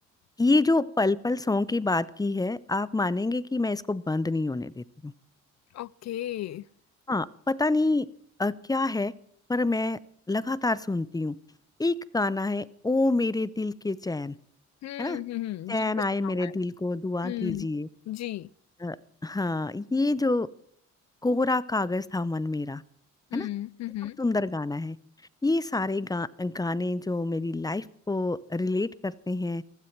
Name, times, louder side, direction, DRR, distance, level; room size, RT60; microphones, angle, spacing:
voice 1, 0.4-5.1 7.1-8.1 8.4-9.1 9.5-10.0 10.3-11.3 11.8-14.4 15.0-15.2 15.7-17.9 18.8-19.0 19.2-20.5 21.2-22.8 23.3-23.5 24.2-25.0 25.4-29.6, left 2 dB, 10° left, 0.6 m, -27 dB
voice 2, 5.7-6.7 14.8-16.5 17.2-17.7 18.1-18.5 23.3-24.2, left 14 dB, 60° left, 0.5 m, -35 dB
16.0 x 12.5 x 5.9 m
cardioid pair, 90°, 30 cm